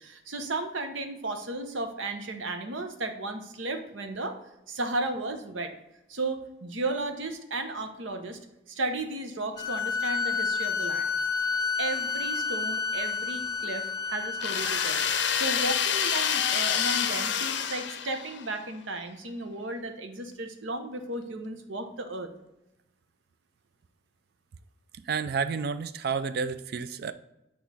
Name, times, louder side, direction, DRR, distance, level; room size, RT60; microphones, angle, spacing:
voice 1, 0.0-4.4 4.7-5.7 6.1-8.4 8.7-11.1 11.8-15.1 15.3-22.3, right 2 dB, 80° right, 6 dB, 0.8 m, -34 dB
sound 1, 9.6-15.3, left 5 dB, 20° left, 0.5 m, -30 dB
sound 2, 14.4-18.5, left 8 dB, 65° left, 0.5 m, -27 dB
voice 2, 25.1-27.1, right 5 dB, 50° right, 13 dB, 0.3 m, -30 dB
8.1 x 3.1 x 4.0 m, 0.91 s
head